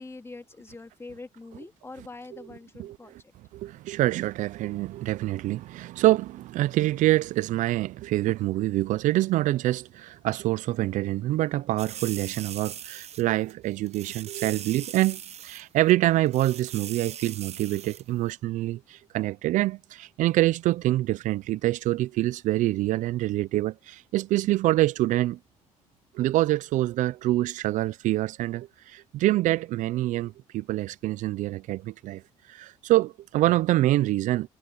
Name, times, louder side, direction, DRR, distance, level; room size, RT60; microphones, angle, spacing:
voice 1, 0.0-3.1, left 3 dB, 20° left, 2.3 m, -43 dB
voice 2, 3.5-25.4 26.1-32.2 32.5-34.5, right 16 dB, 70° right, 0.4 m, -26 dB
sound 1, 11.8-13.2 13.5-13.6 13.9-15.6 15.9-16.0 16.3-18.0 18.3-18.4, right 9 dB, 55° right, 1.0 m, -40 dB
cardioid pair, 85°, 13 cm